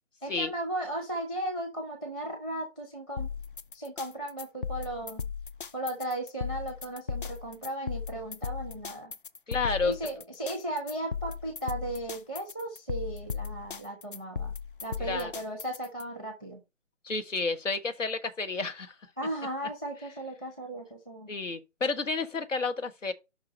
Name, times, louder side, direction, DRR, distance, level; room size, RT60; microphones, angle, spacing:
voice 1, 0.2-3.3 3.7-5.3 5.7-9.1 9.8-14.5 14.8-16.6 19.2-21.3, right 1 dB, 5° left, 0.8 m, -36 dB
sound 1, 3.2-16.0, left 6 dB, 45° left, 0.5 m, -36 dB
voice 2, 9.5-9.9 15.0-15.3 17.0-18.9 21.3-23.1, left 4 dB, 80° left, 1.6 m, -30 dB
5.8 x 4.7 x 6.4 m
figure-of-eight pair, 155°, 37 cm